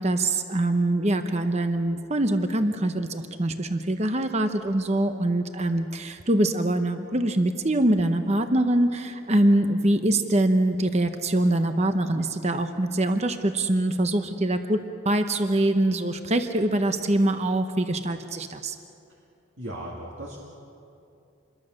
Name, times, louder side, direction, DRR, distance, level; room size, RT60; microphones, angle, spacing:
voice 1, 0.0-14.8 15.0-18.7, right 1 dB, 30° right, 7 dB, 0.9 m, -24 dB
voice 2, 19.6-20.4, right 1 dB, 60° right, -3 dB, 2.4 m, -36 dB
27.0 x 22.0 x 6.5 m, 2.6 s
head